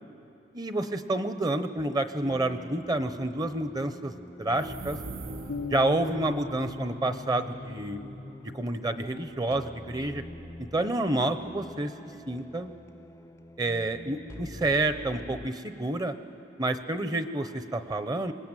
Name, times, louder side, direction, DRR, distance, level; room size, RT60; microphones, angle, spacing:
voice 1, 0.5-4.1 4.4-5.0 5.7-8.0 8.4-10.2 10.6-12.7 13.6-16.1 16.6-18.3, right 2 dB, 25° right, 10 dB, 1.0 m, -29 dB
sound 1, 2.2-15.5, left 1 dB, 15° left, 0.6 m, -45 dB
sound 2, 4.5-6.0, right 3 dB, 60° right, 0.5 m, -41 dB
sound 3, 5.5-9.3, left 3 dB, 65° left, 0.5 m, -41 dB
25.5 x 20.5 x 9.1 m, 2.7 s
head